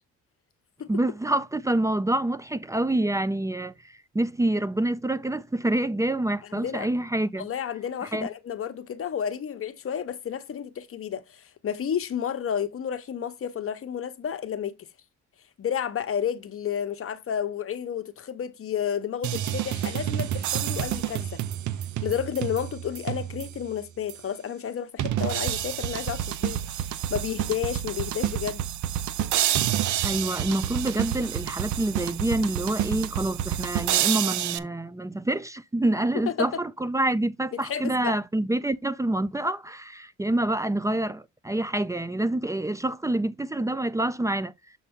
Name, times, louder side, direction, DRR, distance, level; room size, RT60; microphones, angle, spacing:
voice 1, 0.9-3.7 4.1-7.5 8.1-8.3 30.0-44.5, right 1 dB, 10° right, 0.4 m, -27 dB
voice 2, 6.4-6.9 7.3-14.8 15.6-21.4 22.0-28.7 36.1-36.5 37.5-38.2, left 8 dB, 50° left, 0.9 m, -31 dB
sound 1, 19.2-23.7 24.1-24.2 25.0-34.6, right 11 dB, 75° right, 0.7 m, -29 dB
7.1 x 4.3 x 3.5 m
cardioid pair, 90°, 30 cm